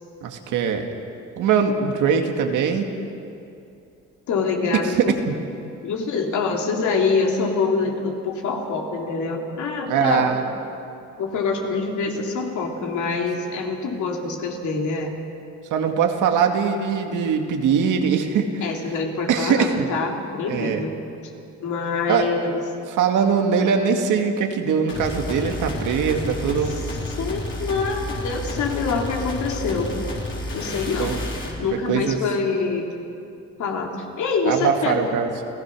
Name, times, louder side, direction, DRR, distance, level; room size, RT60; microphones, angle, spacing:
voice 1, 0.2-0.8 1.4-2.9 5.0-5.3 9.9-10.4 15.7-18.5 19.3-19.9 20.5-20.8 22.1-22.3 22.9-26.8 31.0-31.2 31.7-32.2 34.5-35.3, right 6 dB, 85° right, 4 dB, 2.2 m, -21 dB
voice 2, 4.3-5.1 5.8-10.4 11.2-15.2 18.6-21.0 21.6-22.6 26.7-26.8 27.2-30.0 30.5-31.2 31.6-32.9 33.6-35.1, left 4 dB, 75° left, 1 dB, 3.2 m, -25 dB
sound 1, 24.9-31.6, left 1 dB, 40° left, 4.4 m, -30 dB
29.5 x 15.5 x 6.2 m, 2.7 s
cardioid pair, 90°, 30 cm